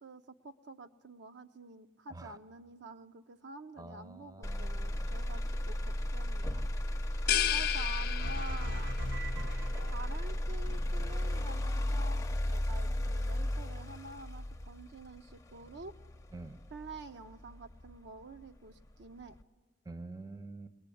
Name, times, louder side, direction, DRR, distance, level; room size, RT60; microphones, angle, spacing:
voice 1, 0.0-6.7 7.5-8.9 9.9-12.2 12.5-16.0 16.7-19.4, right 3 dB, 65° right, 8 dB, 0.6 m, -48 dB
voice 2, 3.8-5.1 6.4-6.7 7.1-7.4 9.3-9.6 16.3-16.6 19.8-20.7, right 2 dB, 20° right, 12 dB, 0.6 m, -48 dB
Motor vehicle (road), 4.4-18.4 18.9-19.4, left 1 dB, 15° left, 0.6 m, -35 dB
sound 1, 7.3-9.0, left 11 dB, 55° left, 0.6 m, -32 dB
sound 2, 8.2-10.6, equal, 80° right, 1.7 m, -42 dB
20.5 x 20.5 x 8.4 m, 1.3 s
head